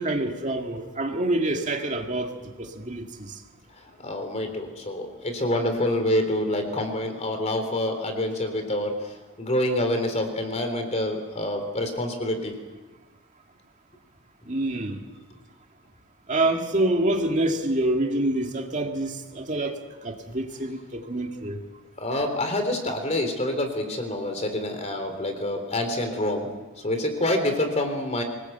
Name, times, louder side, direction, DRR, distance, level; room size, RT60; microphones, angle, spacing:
voice 1, 0.0-2.3 2.6-3.1 14.5-15.0 16.3-21.6, right 1 dB, 35° right, 3 dB, 2.1 m, -26 dB
voice 2, 3.9-12.5 22.0-26.5 26.8-28.2, left 1 dB, 30° left, 6 dB, 3.6 m, -27 dB
25.5 x 19.0 x 8.0 m, 1.2 s
head